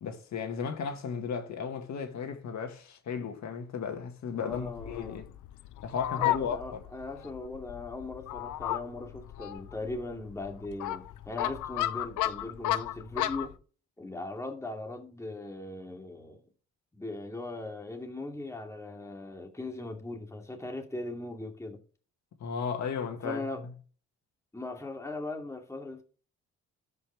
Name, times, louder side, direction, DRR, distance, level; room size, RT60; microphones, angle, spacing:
voice 1, 0.0-5.2 5.8-6.8 22.4-23.4, left 6 dB, 65° left, 1.9 m, -35 dB
voice 2, 4.3-5.2 6.2-13.6 14.0-16.4 16.9-21.8 23.2-23.6 24.5-26.0, left 2 dB, 10° left, 2.6 m, -39 dB
Fowl, 4.5-13.5, left 13 dB, 85° left, 0.8 m, -34 dB
12.5 x 5.5 x 3.4 m
cardioid pair, 90°, 30 cm